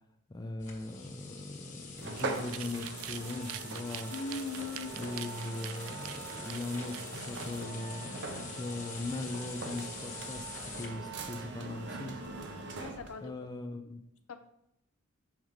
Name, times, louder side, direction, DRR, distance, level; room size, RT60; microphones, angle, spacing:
voice 1, 0.3-4.1 4.9-12.2 13.2-14.0, left 2 dB, 20° left, 5 dB, 0.4 m, -39 dB
sound 1, 0.6-10.9, left 5 dB, 35° left, 1.2 m, -47 dB
sound 2, 2.0-13.3, right 3 dB, 55° right, 0.7 m, -42 dB
sound 3, 2.1-7.7, right 12 dB, 75° right, 0.3 m, -45 dB
voice 2, 4.1-5.2 12.8-13.3 14.3-14.4, left 3 dB, 70° left, 8 dB, 0.6 m, -40 dB
7.2 x 5.0 x 3.1 m, 0.80 s
head